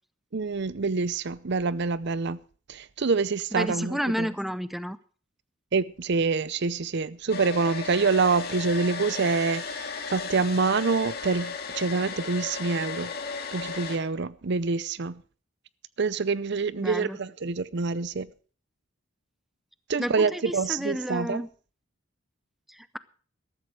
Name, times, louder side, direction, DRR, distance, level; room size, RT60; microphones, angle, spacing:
voice 1, 0.3-2.4 2.7-4.3 5.7-13.1 13.5-15.2 16.0-18.3 19.9-21.4, right 4 dB, 55° right, 0.6 m, -26 dB
voice 2, 3.5-5.0 16.8-17.2 20.0-21.5 22.7-23.0, equal, ahead, 0.5 m, -31 dB
Domestic sounds home sounds, 7.3-14.0, left 5 dB, 50° left, 2.2 m, -35 dB
14.0 x 13.0 x 4.7 m
head